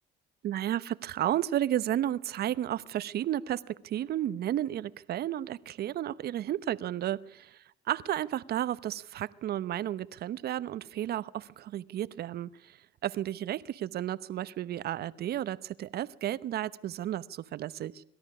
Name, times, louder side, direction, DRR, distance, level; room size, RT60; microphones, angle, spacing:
voice 1, 0.4-7.5 7.9-12.8 13.0-18.0, right 12 dB, 60° right, 17 dB, 0.9 m, -32 dB
23.5 x 13.5 x 8.5 m, 0.72 s
supercardioid pair, 85°, 19 cm